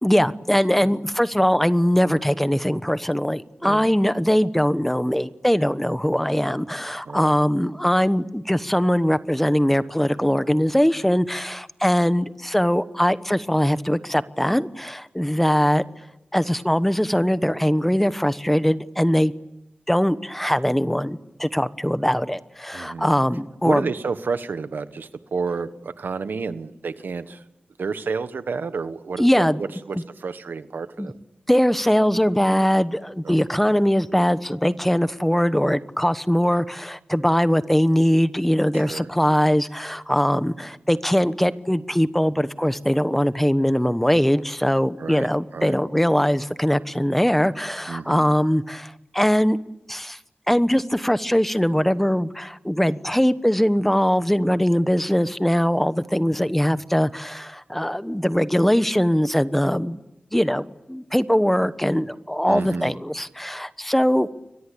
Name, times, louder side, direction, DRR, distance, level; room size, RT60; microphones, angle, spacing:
voice 1, 0.0-15.8 16.3-19.3 19.9-23.8 29.2-29.6 31.0-31.1 31.5-49.6 49.9-50.2 50.5-60.0 60.3-64.3, equal, 5° left, 13 dB, 1.1 m, -21 dB
voice 2, 22.7-23.1 23.6-27.4 27.8-31.2 33.2-33.6 38.7-39.1 45.0-45.8 47.9-48.3 62.5-62.9, right 4 dB, 90° right, 11 dB, 1.4 m, -30 dB
29.5 x 23.0 x 8.6 m, 0.90 s
wide cardioid pair, 70°, 3 cm